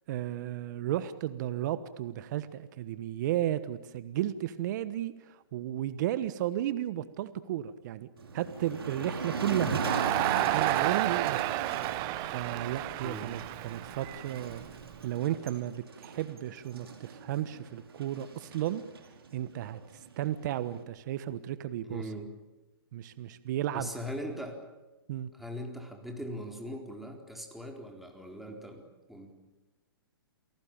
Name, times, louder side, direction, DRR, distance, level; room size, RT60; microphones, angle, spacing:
voice 1, 0.1-11.6 12.2-14.7 15.0-18.8 19.3-22.1 22.9-23.9 25.1-25.3, right 12 dB, 50° right, 13 dB, 1.3 m, -34 dB
Motor vehicle (road), 8.2-20.8, right 4 dB, 80° right, 4.9 m, -39 dB
Crowd, 9.7-14.9, right 19 dB, 30° right, 0.7 m, -31 dB
voice 2, 13.0-13.3 21.9-22.3 23.7-24.6 25.3-29.3, equal, ahead, 2 dB, 4.2 m, -40 dB
28.5 x 18.0 x 9.0 m, 1.1 s
hypercardioid pair, 130°, 12 cm